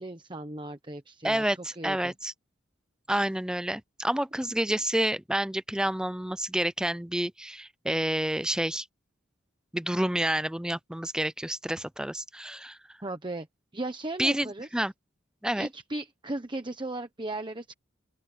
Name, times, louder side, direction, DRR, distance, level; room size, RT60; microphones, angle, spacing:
voice 1, 0.0-1.4 1.8-2.1 13.0-13.5 13.7-14.7 15.5-17.7, right 2 dB, 25° right, 1.1 m, -36 dB
voice 2, 1.2-2.3 3.1-8.9 9.7-12.8 14.2-14.9 15.4-15.7, right 1 dB, 5° right, 0.4 m, -29 dB
open air
head